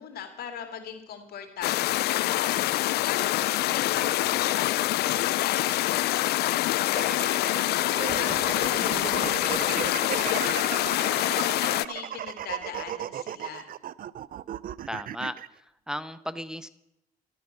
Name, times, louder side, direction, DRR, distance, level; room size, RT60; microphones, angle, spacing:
voice 1, 0.0-13.7, left 7 dB, 75° left, 5 dB, 2.9 m, -40 dB
sound 1, 1.6-11.9, left 16 dB, 90° left, 0.4 m, -25 dB
sound 2, 6.8-15.5, right 11 dB, 60° right, 0.5 m, -36 dB
sound 3, 8.0-11.8, right 5 dB, 35° right, 0.9 m, -39 dB
voice 2, 14.9-16.7, equal, 5° right, 12 dB, 0.6 m, -35 dB
13.5 x 12.5 x 6.8 m, 0.85 s
cardioid pair, 95°, 16 cm